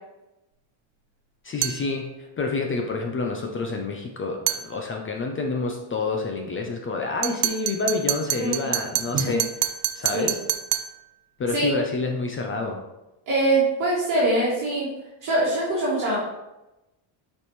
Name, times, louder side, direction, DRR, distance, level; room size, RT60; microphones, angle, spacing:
voice 1, 1.4-9.4 9.9-10.4 11.4-12.8, left 3 dB, 25° left, 2 dB, 0.5 m, -28 dB
sound 1, 1.6-1.9 4.5-4.7 7.2-11.0, right 13 dB, 65° right, 0.6 m, -27 dB
voice 2, 13.3-14.9 15.2-16.3, right 2 dB, 40° right, -7 dB, 2.1 m, -23 dB
6.7 x 5.4 x 3.1 m, 0.97 s
cardioid pair, 165°, 48 cm